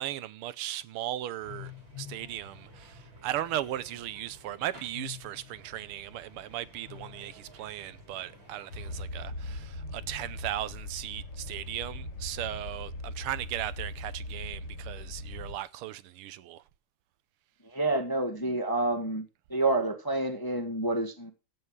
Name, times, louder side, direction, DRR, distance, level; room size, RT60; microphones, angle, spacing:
voice 1, 0.0-1.7 2.0-16.6, right 13 dB, 85° right, 1.6 m, -37 dB
sound 1, 1.4-8.9, left 6 dB, 60° right, 4.9 m, -49 dB
sound 2, 8.7-15.6, left 1 dB, 75° left, 3.4 m, -40 dB
voice 2, 17.6-19.2 19.5-21.3, right 2 dB, 15° left, 1.0 m, -28 dB
15.0 x 5.6 x 6.1 m
omnidirectional pair, 2.4 m